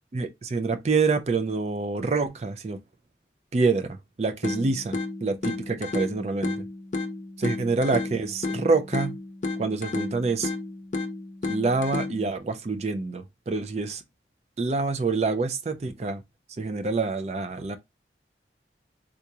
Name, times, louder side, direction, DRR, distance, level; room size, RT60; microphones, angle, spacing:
voice 1, 0.1-2.8 3.5-6.5 7.4-9.2 9.6-10.5 11.4-14.0 14.6-16.2 16.6-17.8, right 4 dB, 40° right, 0.4 m, -26 dB
sound 1, 4.4-12.4, left 3 dB, 45° left, 0.5 m, -32 dB
3.7 x 2.9 x 2.2 m
head